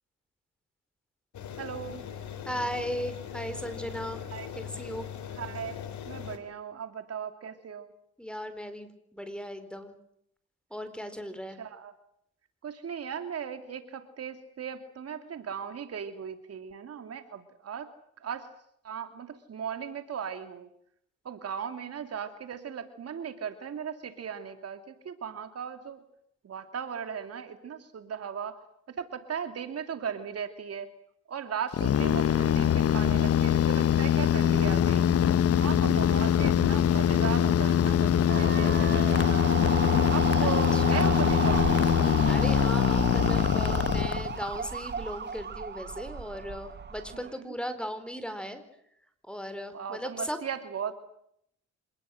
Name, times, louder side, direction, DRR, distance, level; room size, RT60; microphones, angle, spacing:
sound 1, 1.3-6.4, left 8 dB, 70° left, 3.8 m, -40 dB
voice 1, 1.6-2.0 4.3-4.5 5.4-7.9 11.6-11.9 12.6-17.9 18.2-18.5 18.8-20.7 21.2-26.0 26.4-28.6 29.0-30.9 31.3-35.1 35.6-39.5 40.1-41.7 47.1-47.5 49.7-50.9, right 7 dB, 55° right, 8 dB, 2.6 m, -37 dB
voice 2, 2.4-4.2 4.6-5.1 8.2-10.0 10.7-11.6 40.4-41.2 42.3-48.6 49.3-50.4, equal, 5° left, 11 dB, 4.4 m, -37 dB
sound 2, 31.7-44.6, left 10 dB, 50° left, 1.0 m, -23 dB
sound 3, 38.3-47.3, right 6 dB, 35° right, 1.6 m, -33 dB
26.5 x 19.5 x 7.8 m, 0.72 s
cardioid pair, 90°, 30 cm